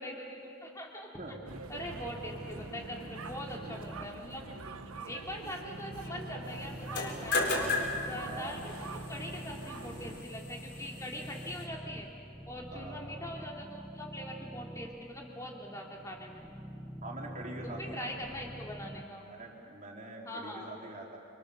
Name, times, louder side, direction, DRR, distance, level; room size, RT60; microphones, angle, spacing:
voice 1, 0.0-1.1 1.7-4.5 5.1-7.6 8.1-12.1 12.5-16.4 17.6-19.3 20.2-20.7, equal, 15° left, -1 dB, 3.0 m, -42 dB
sound 1, 1.1-19.0, equal, 5° right, 1.2 m, -46 dB
sound 2, 1.5-10.2, right 4 dB, 75° right, 1.1 m, -45 dB
voice 2, 4.4-4.7 8.3-9.1 12.7-13.0 17.0-18.3 19.3-21.2, right 2 dB, 35° right, -1 dB, 4.1 m, -45 dB
sound 3, 6.8-11.6, left 3 dB, 50° left, 4.5 m, -36 dB
29.0 x 25.0 x 7.1 m, 2.5 s
head